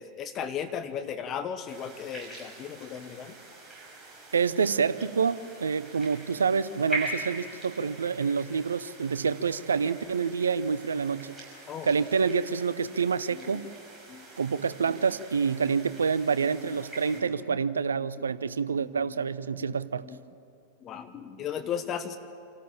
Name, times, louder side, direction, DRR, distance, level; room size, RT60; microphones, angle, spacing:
voice 1, 0.0-3.3 11.7-11.9 13.3-13.5 14.1-14.3 17.1-17.3 17.9-18.1 18.7-19.2 19.6-20.2 20.8-22.2, left 8 dB, 30° left, 9 dB, 1.1 m, -36 dB
sound 1, 1.7-17.2, right 2 dB, 10° right, 6.2 m, -43 dB
voice 2, 4.3-11.3 11.8-13.7 14.4-20.0, right 5 dB, 70° right, 16 dB, 0.6 m, -27 dB
27.5 x 13.5 x 8.7 m, 2.5 s
figure-of-eight pair, 90°, 0 cm